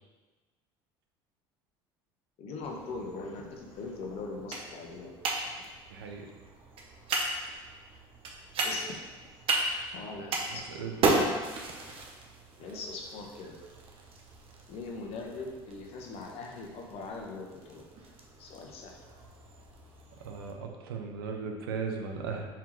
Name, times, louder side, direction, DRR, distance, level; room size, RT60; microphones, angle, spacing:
voice 1, 2.4-5.1 8.6-9.1 9.9-10.6 12.6-13.5 14.7-17.8 18.4-19.0, left 3 dB, 55° left, 0 dB, 0.9 m, -41 dB
sound 1, 2.6-20.5, right 2 dB, 50° right, 0.8 m, -36 dB
voice 2, 5.9-6.3 10.5-11.2 20.2-22.5, right 5 dB, 90° right, 3 dB, 0.6 m, -37 dB
4.6 x 3.6 x 3.1 m, 1.3 s
hypercardioid pair, 80°, 12 cm